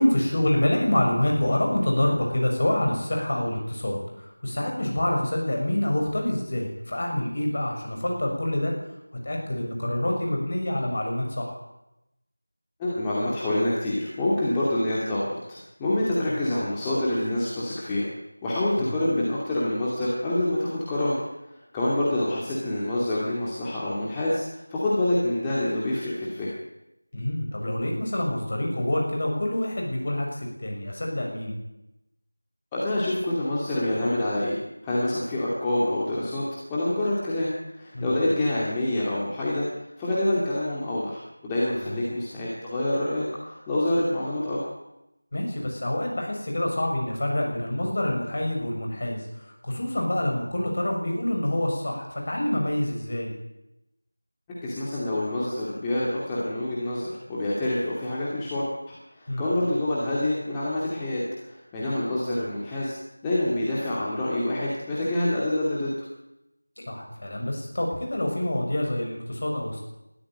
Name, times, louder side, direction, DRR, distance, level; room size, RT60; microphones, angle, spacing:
voice 1, 0.0-8.7 9.2-11.6 27.1-31.6 37.9-38.1 41.8-41.9 45.3-53.3 59.3-59.4 66.8-69.8, left 1 dB, 40° left, 0 dB, 6.6 m, -26 dB
voice 2, 12.8-18.1 18.4-21.2 21.5-26.5 32.7-34.6 34.8-36.4 36.7-37.5 37.8-39.7 40.0-44.6 54.6-62.9 63.2-65.9, left 1 dB, 10° left, -7 dB, 2.3 m, -26 dB
21.0 x 13.5 x 9.1 m, 0.90 s
figure-of-eight pair, 175°, 0 cm